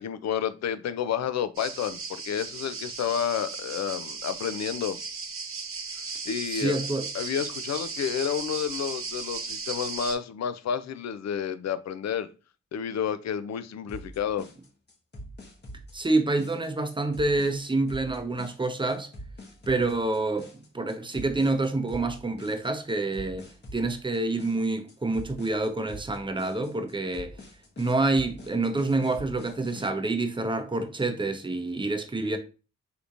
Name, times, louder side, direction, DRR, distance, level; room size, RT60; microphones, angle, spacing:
voice 1, 0.0-5.0 6.3-6.8 7.1-12.3 12.7-14.5, left 8 dB, 65° left, 0.5 m, -30 dB
sound 1, 1.5-10.2, right 4 dB, 50° right, 0.7 m, -36 dB
voice 2, 6.5-7.1 15.9-19.1 19.7-27.4 27.8-32.4, right 2 dB, 15° right, 0.7 m, -27 dB
sound 2, 13.9-29.9, equal, 35° left, 0.9 m, -45 dB
3.5 x 2.8 x 2.5 m
supercardioid pair, 45°, 30 cm